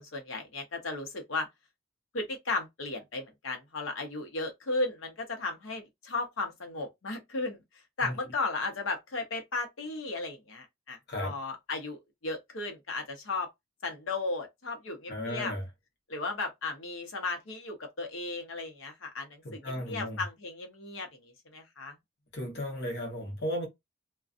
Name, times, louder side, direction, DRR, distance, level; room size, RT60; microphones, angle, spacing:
voice 1, 0.0-1.5 2.1-7.6 8.0-11.0 11.2-13.5 13.8-15.5 16.1-21.9, left 3 dB, 85° left, 0.8 m, -35 dB
voice 2, 15.1-15.6 19.4-20.2 22.3-23.7, left 1 dB, 55° left, 1.0 m, -35 dB
2.4 x 2.3 x 2.4 m
head